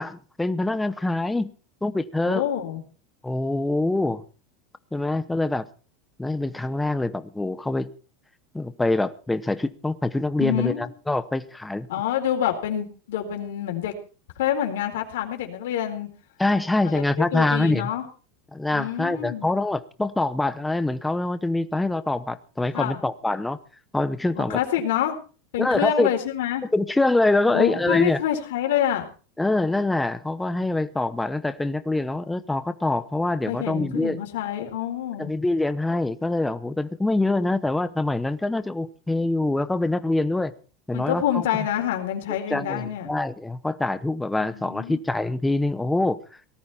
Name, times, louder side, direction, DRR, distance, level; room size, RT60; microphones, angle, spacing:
voice 1, 0.0-1.5 1.8-2.5 3.2-4.2 4.9-5.7 6.2-7.9 8.5-11.9 16.4-17.9 18.5-23.6 23.9-24.6 25.6-26.1 26.7-28.2 29.4-34.2 35.2-40.5 40.9-41.5 42.5-46.2, left 2 dB, 5° left, 0.9 m, -25 dB
voice 2, 2.3-2.8 10.4-10.8 11.9-13.9 14.4-16.1 16.8-18.1 18.7-19.5 22.7-23.0 24.4-25.2 25.5-26.7 27.5-29.1 33.5-35.3 40.9-43.2 44.4-45.0, left 10 dB, 85° left, 4.2 m, -27 dB
18.5 x 13.5 x 4.3 m
supercardioid pair, 160°, 0 cm